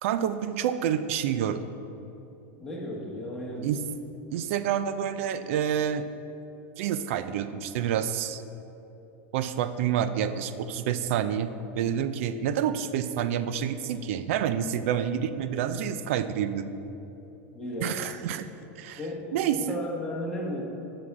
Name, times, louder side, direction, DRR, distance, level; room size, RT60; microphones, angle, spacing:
voice 1, 0.0-1.6 3.6-3.8 4.3-6.1 6.8-8.4 9.3-16.7 17.8-18.5 18.8-19.0 19.3-19.8, right 9 dB, 65° right, 12 dB, 0.4 m, -28 dB
voice 2, 2.6-3.8 17.5-18.2 19.0-20.6, left 1 dB, 5° left, -5 dB, 1.4 m, -35 dB
8.5 x 5.9 x 4.7 m, 3.0 s
supercardioid pair, 150°, 8 cm